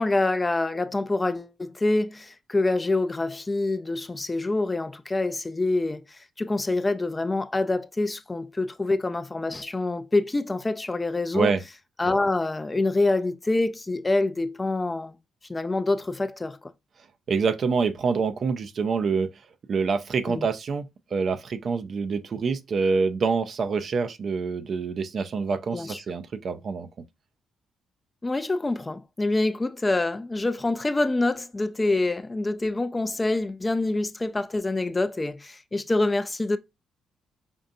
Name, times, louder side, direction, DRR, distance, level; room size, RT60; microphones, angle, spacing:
voice 1, 0.0-11.5 12.0-15.1 15.5-16.7 20.3-20.5 25.7-26.0 28.2-36.6, left 2 dB, 20° left, 0.3 m, -26 dB
voice 2, 17.3-19.3 19.7-26.9, right 5 dB, 50° right, 0.4 m, -26 dB
5.2 x 2.4 x 2.6 m
cardioid pair, 90°, 0 cm